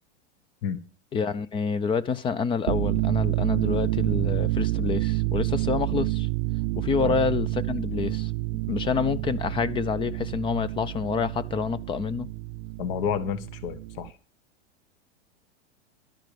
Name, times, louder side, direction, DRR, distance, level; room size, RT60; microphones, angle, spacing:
voice 1, 1.1-6.3 6.8-8.3 8.7-12.3, left 5 dB, 15° left, 0.5 m, -27 dB
sound 1, 2.6-14.1, right 20 dB, 55° right, 0.6 m, -28 dB
voice 2, 12.8-14.1, left 7 dB, 50° left, 1.7 m, -30 dB
12.0 x 10.5 x 5.1 m
supercardioid pair, 140°, 35 cm